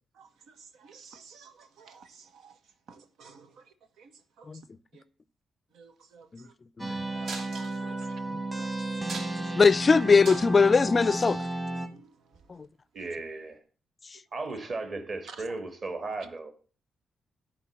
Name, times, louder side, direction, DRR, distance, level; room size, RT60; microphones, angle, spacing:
voice 1, 0.8-2.1 2.3-2.5 2.9-3.5 4.0-4.1 4.4-4.5 4.9-5.0 5.7-6.3 7.1-7.9 9.5-9.6 11.9-12.0, right 5 dB, 90° right, 1.3 m, -52 dB
sound 1, 6.8-11.9, right 2 dB, 15° right, 1.2 m, -33 dB
sound 2, 7.3-8.1 8.5-8.6 8.9-9.6 10.0-10.7 11.2-11.4 12.3-12.5, right 4 dB, 65° right, 2.4 m, -40 dB
voice 2, 9.6-11.5 12.5-12.7, left 4 dB, 25° left, 0.4 m, -21 dB
voice 3, 12.9-13.6 14.3-16.5, right 3 dB, 40° right, 2.1 m, -35 dB
12.0 x 4.5 x 7.3 m
wide cardioid pair, 150°, 0 cm